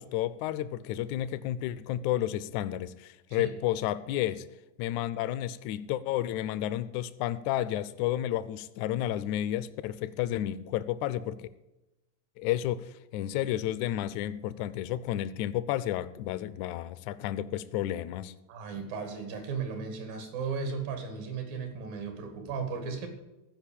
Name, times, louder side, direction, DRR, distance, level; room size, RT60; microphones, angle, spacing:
voice 1, 0.0-4.5 4.8-11.5 12.4-18.3, left 12 dB, 85° left, 16 dB, 1.7 m, -31 dB
voice 2, 18.5-23.1, right 5 dB, 85° right, 6 dB, 3.5 m, -35 dB
15.0 x 5.2 x 8.5 m, 0.98 s
omnidirectional pair, 3.9 m